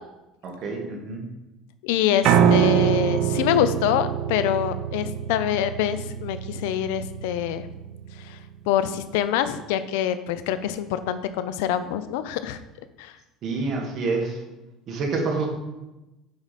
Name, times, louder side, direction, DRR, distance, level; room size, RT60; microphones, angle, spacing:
voice 1, 0.4-1.2 13.4-14.4 14.9-15.5, right 3 dB, 45° right, 1 dB, 1.6 m, -27 dB
voice 2, 1.8-7.7 8.2-8.4 8.7-12.6 13.0-13.1, left 11 dB, 85° left, 12 dB, 0.5 m, -25 dB
Piano, 2.2-8.4, right 9 dB, 65° right, 0.5 m, -24 dB
7.2 x 4.8 x 4.1 m, 1.0 s
cardioid pair, 125°, 0 cm